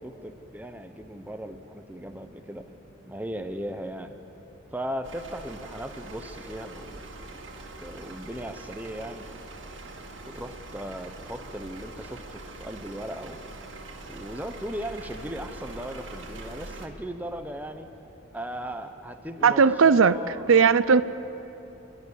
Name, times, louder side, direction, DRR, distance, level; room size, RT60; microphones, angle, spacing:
voice 1, 0.0-2.7 3.1-4.1 4.7-7.4 7.8-9.4 10.3-13.4 14.1-17.9 18.3-20.7, equal, 10° right, 7 dB, 0.8 m, -37 dB
sound 1, 5.0-16.9, right 2 dB, 70° right, 1.9 m, -43 dB
voice 2, 19.4-20.2 20.5-21.0, right 6 dB, 85° right, 14 dB, 0.6 m, -17 dB
27.5 x 11.0 x 9.8 m, 2.9 s
head